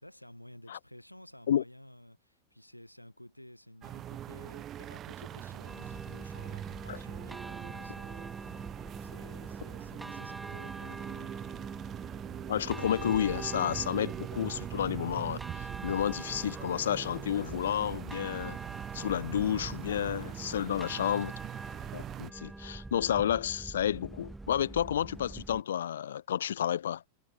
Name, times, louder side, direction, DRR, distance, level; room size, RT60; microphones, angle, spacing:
voice 1, 0.0-11.4 20.6-21.0, left 1 dB, 90° left, 6.3 m, -53 dB
sound 1, 3.8-22.3, right 11 dB, 30° right, 1.6 m, -42 dB
sound 2, 5.7-25.6, right 2 dB, 5° right, 1.4 m, -45 dB
voice 2, 12.5-18.6 18.9-21.3 21.9-27.0, left 10 dB, 65° left, 0.8 m, -31 dB
figure-of-eight pair, 90°, 0 cm